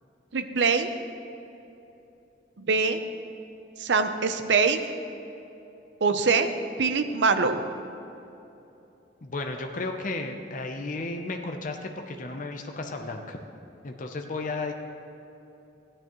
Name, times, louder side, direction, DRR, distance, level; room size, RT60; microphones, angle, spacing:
voice 1, 0.3-0.9 2.6-3.0 3.8-4.8 6.0-6.5 6.8-7.6, right 4 dB, 80° right, 8 dB, 0.7 m, -23 dB
voice 2, 9.2-13.4 13.8-14.7, left 3 dB, 45° left, 4 dB, 0.7 m, -33 dB
15.0 x 9.7 x 3.1 m, 2.9 s
head